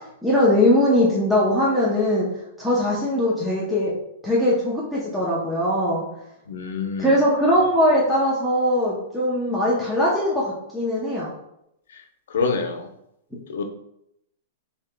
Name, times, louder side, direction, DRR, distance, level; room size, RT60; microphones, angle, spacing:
voice 1, 0.2-2.3 2.6-3.9 4.2-6.1 7.0-11.3, left 1 dB, ahead, -8 dB, 0.7 m, -20 dB
voice 2, 6.5-7.1 12.3-12.9 13.5-13.6, left 4 dB, 75° left, 6 dB, 0.7 m, -26 dB
7.0 x 2.8 x 2.2 m, 0.79 s
supercardioid pair, 165°, 0 cm